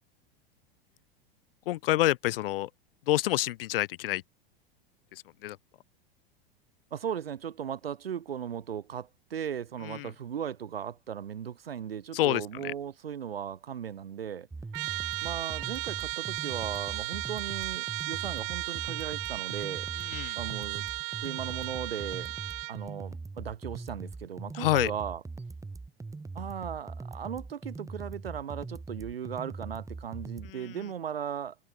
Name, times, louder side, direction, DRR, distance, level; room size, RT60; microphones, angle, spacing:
voice 1, 1.7-2.7 3.1-4.2 5.1-5.6 9.8-10.1 12.1-12.7 20.0-20.4 24.5-24.9 30.4-30.8, left 16 dB, 70° left, 0.6 m, -28 dB
voice 2, 6.9-14.5 15.2-19.9 20.3-20.8 21.2-22.3 22.7-25.2 26.3-31.6, right 8 dB, 90° right, 1.5 m, -37 dB
sound 1, 14.5-30.5, right 3 dB, 10° right, 3.0 m, -41 dB
Trumpet, 14.7-22.8, right 40 dB or more, 55° right, 2.4 m, -35 dB
hypercardioid pair, 100°, 29 cm